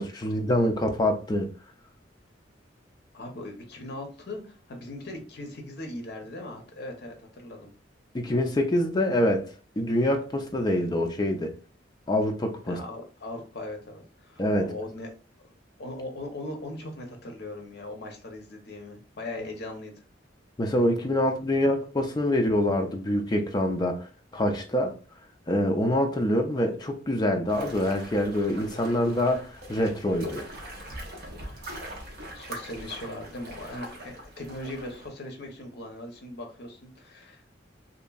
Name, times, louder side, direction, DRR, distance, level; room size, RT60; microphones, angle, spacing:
voice 1, 0.0-1.5 8.1-9.5 9.8-11.5 12.1-12.8 14.4-14.8 20.6-24.9 25.5-30.4, left 1 dB, 20° left, 0.4 m, -25 dB
voice 2, 3.1-7.7 12.7-15.1 15.8-19.9 32.3-37.4, left 1 dB, 60° left, 0.7 m, -39 dB
sound 1, 27.5-35.1, equal, 55° right, 0.7 m, -42 dB
2.9 x 2.5 x 2.3 m
head